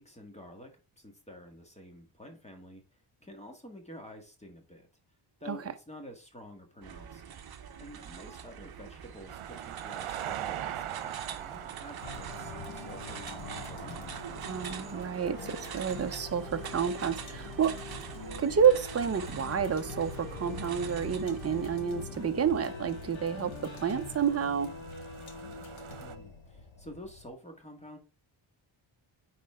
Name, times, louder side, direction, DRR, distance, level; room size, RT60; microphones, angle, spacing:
voice 1, 0.0-2.8 3.2-4.9 5.4-7.2 7.8-14.5 26.0-28.0, equal, 15° left, 1.8 m, -49 dB
sound 1, 6.8-21.8, right 8 dB, 50° right, 1.1 m, -45 dB
sound 2, 9.3-26.2, right 11 dB, 90° right, 0.9 m, -44 dB
sound 3, 12.0-27.3, left 4 dB, 70° left, 2.1 m, -44 dB
voice 2, 14.4-17.8 18.4-24.7, right 7 dB, 30° right, 0.8 m, -29 dB
10.0 x 4.2 x 3.7 m
wide cardioid pair, 150°, 48 cm